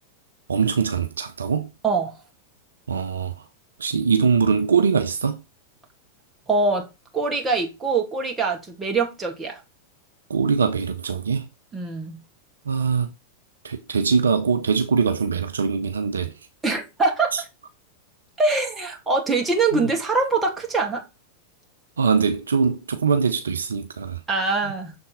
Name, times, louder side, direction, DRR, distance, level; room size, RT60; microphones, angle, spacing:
voice 1, 0.5-1.7 2.9-3.4 3.8-5.4 10.3-11.5 12.7-13.1 13.6-16.3 17.3-17.4 22.0-24.2, right 5 dB, 70° right, 0.6 m, -22 dB
voice 2, 1.8-2.1 6.5-6.9 7.1-9.6 11.7-12.2 16.6-17.3 18.4-21.0 24.3-24.9, right 3 dB, 15° right, 2.1 m, -23 dB
6.8 x 3.8 x 3.9 m
figure-of-eight pair, 90°, 0 cm